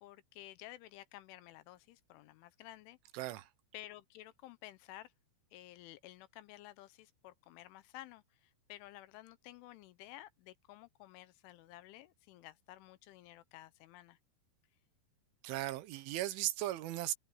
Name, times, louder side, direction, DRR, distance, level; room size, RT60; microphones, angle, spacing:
voice 1, 0.0-3.0 3.7-5.1 5.5-14.2, left 16 dB, 80° left, 3.2 m, -53 dB
voice 2, 3.1-3.5 15.4-17.1, right 15 dB, 75° right, 3.5 m, -37 dB
omnidirectional pair, 5.7 m